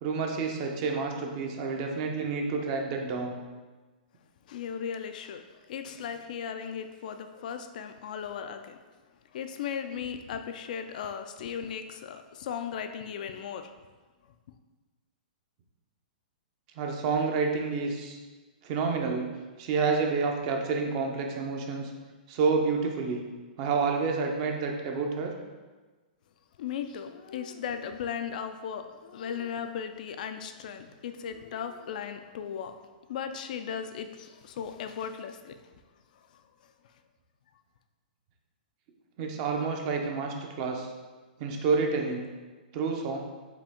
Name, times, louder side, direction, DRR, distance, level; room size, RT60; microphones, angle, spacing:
voice 1, 0.0-3.3 16.8-18.2 18.6-19.3 19.6-21.9 22.3-23.2 23.6-25.3 39.2-40.9 41.4-42.2 42.7-43.2, right 4 dB, 40° right, 2 dB, 0.6 m, -29 dB
voice 2, 4.5-5.4 5.7-8.8 9.3-13.7 26.6-32.8 33.1-35.5, left 7 dB, 60° left, 8 dB, 0.3 m, -37 dB
4.9 x 2.7 x 3.6 m, 1.3 s
hypercardioid pair, 145°, 5 cm